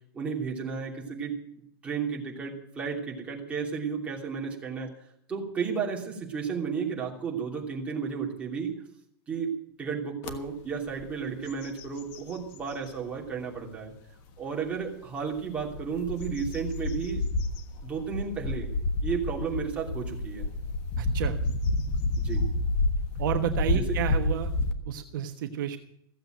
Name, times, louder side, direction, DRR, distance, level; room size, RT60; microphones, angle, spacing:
voice 1, 0.1-1.3 1.8-4.9 5.3-8.7 9.3-9.5 9.8-13.9 14.4-17.2 17.8-18.7 19.0-20.5 22.2-22.4 23.7-23.8, right 6 dB, 10° right, -2 dB, 2.9 m, -33 dB
sound 1, 10.2-10.4 10.9-11.1 11.5-13.0 13.5-13.6 15.4-24.7, left 2 dB, 30° left, 1.4 m, -29 dB
voice 2, 21.0-21.4 23.2-24.5 24.8-25.8, right 9 dB, 55° right, 6 dB, 1.3 m, -30 dB
15.5 x 7.9 x 9.1 m, 0.70 s
supercardioid pair, 175°, 13 cm